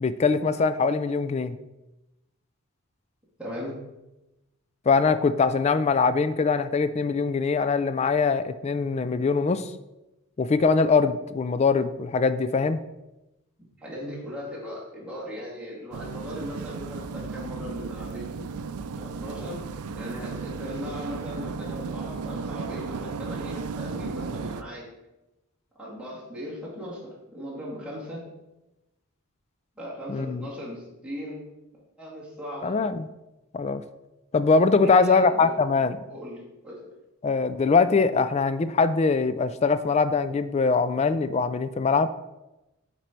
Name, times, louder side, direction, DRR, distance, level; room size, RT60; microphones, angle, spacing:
voice 1, 0.0-1.5 4.9-9.7 10.4-12.8 30.1-30.5 32.6-33.0 33.5-33.8 34.3-36.0 37.2-42.1, left 4 dB, 30° left, 12 dB, 0.3 m, -22 dB
voice 2, 3.4-3.8 13.8-18.3 18.9-19.6 20.0-24.9 25.8-28.3 29.8-31.4 31.7-32.8 34.7-35.5 36.1-36.8, equal, 5° right, -7 dB, 2.4 m, -38 dB
sound 1, 15.9-24.6, right 5 dB, 90° right, 0.4 m, -35 dB
9.1 x 4.4 x 4.6 m, 0.98 s
head